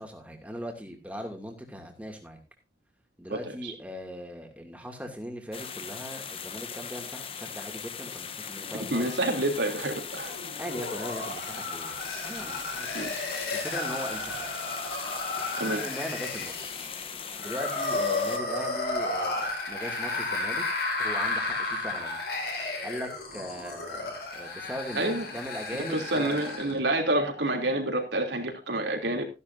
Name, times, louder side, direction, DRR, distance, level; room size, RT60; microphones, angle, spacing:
voice 1, 0.0-2.4 3.2-9.1 10.6-13.1 13.5-14.4 15.3-16.7 17.4-20.6 21.0-22.2 22.8-26.4, equal, 10° right, 2 dB, 2.6 m, -39 dB
voice 2, 3.3-3.7 8.7-10.3 12.9-13.1 15.6-15.8 24.9-25.3 25.9-29.2, right 1 dB, 80° right, 3 dB, 3.2 m, -28 dB
sound 1, 5.5-18.4, left 7 dB, 30° left, 1.0 m, -39 dB
sound 2, 10.2-26.8, left 2 dB, 65° left, 5.1 m, -33 dB
15.0 x 11.0 x 2.7 m, 0.28 s
head